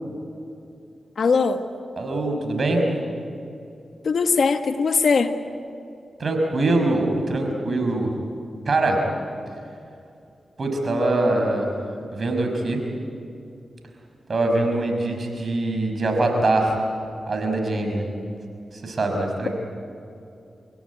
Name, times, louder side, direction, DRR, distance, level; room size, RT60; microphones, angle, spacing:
voice 1, 1.2-1.6 4.0-5.3, left 5 dB, 70° left, 7 dB, 1.6 m, -20 dB
voice 2, 2.0-2.9 6.2-8.1 8.7-9.1 10.6-11.7 12.1-12.8 14.3-16.8 17.3-18.1 18.7-19.5, right 2 dB, 55° right, 3 dB, 5.6 m, -23 dB
28.0 x 17.0 x 9.6 m, 2.6 s
supercardioid pair, 45°, 0 cm